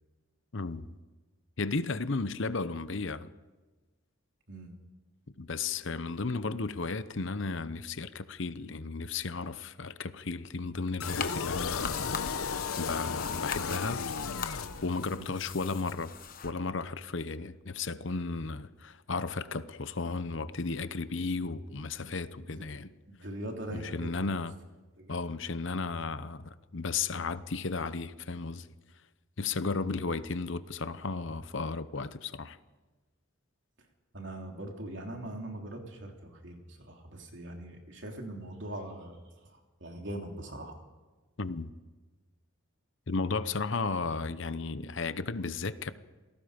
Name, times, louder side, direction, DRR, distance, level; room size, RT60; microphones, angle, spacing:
voice 1, 0.5-0.8 1.6-3.3 5.4-12.0 12.8-14.3 14.8-16.1 16.4-22.9 23.7-24.5 25.1-28.7 29.4-32.6 41.4-41.7 43.1-45.9, left 4 dB, 60° left, 0.8 m, -34 dB
sound 1, 11.0-15.2, left 5 dB, 90° left, 0.9 m, -34 dB
sound 2, 11.0-16.5, left 6 dB, 40° left, 1.1 m, -41 dB
voice 2, 23.1-24.3 25.0-25.2 29.6-29.8 34.1-40.8, right 1 dB, 55° right, 3.4 m, -42 dB
28.0 x 18.0 x 5.2 m
head